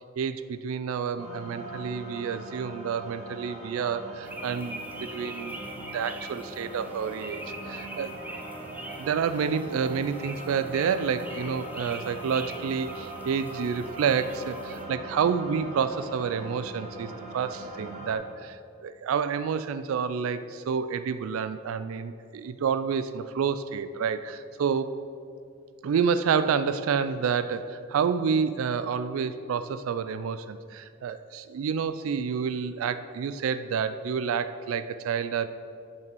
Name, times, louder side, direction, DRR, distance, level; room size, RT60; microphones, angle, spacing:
voice 1, 0.2-5.6 5.9-8.1 9.0-24.9 25.8-35.5, right 6 dB, 80° right, 12 dB, 0.3 m, -29 dB
sound 1, 1.2-18.1, right 1 dB, 35° right, 1.6 m, -41 dB
sound 2, 4.2-14.8, right 1 dB, 10° right, 0.7 m, -43 dB
8.0 x 5.5 x 5.3 m, 2.3 s
head